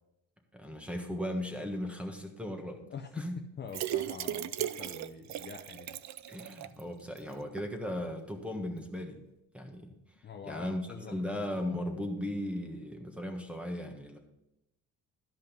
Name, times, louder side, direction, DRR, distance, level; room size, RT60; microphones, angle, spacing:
voice 1, 0.5-2.8 3.1-3.4 6.3-9.2 9.5-9.9 10.4-14.2, left 1 dB, 5° right, 4 dB, 1.4 m, -37 dB
voice 2, 2.9-3.2 3.6-6.0 10.2-11.2, left 6 dB, 30° left, 4 dB, 0.7 m, -45 dB
sound 1, 3.7-6.8 7.2-7.3 7.6-7.7, right 12 dB, 55° right, 0.5 m, -36 dB
12.0 x 5.4 x 5.3 m, 0.88 s
cardioid pair, 125°, 33 cm